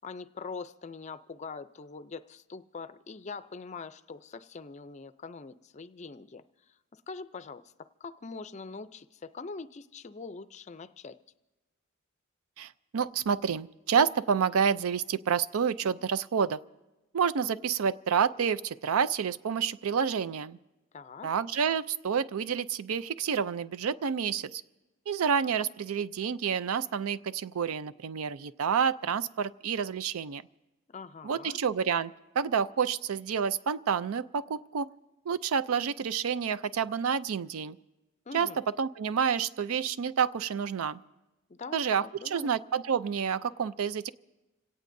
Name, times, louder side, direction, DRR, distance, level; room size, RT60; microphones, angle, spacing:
voice 1, 0.0-6.4 6.9-11.2 20.9-21.3 30.9-31.6 38.3-38.6 41.5-42.5, left 4 dB, 35° left, 13 dB, 0.4 m, -43 dB
voice 2, 12.6-16.6 17.1-20.6 21.2-24.6 25.1-30.4 31.2-34.9 35.3-37.8 38.3-38.5 38.8-41.0 41.7-44.1, right 7 dB, 80° right, 15 dB, 0.4 m, -29 dB
27.0 x 17.5 x 2.6 m, 1.0 s
head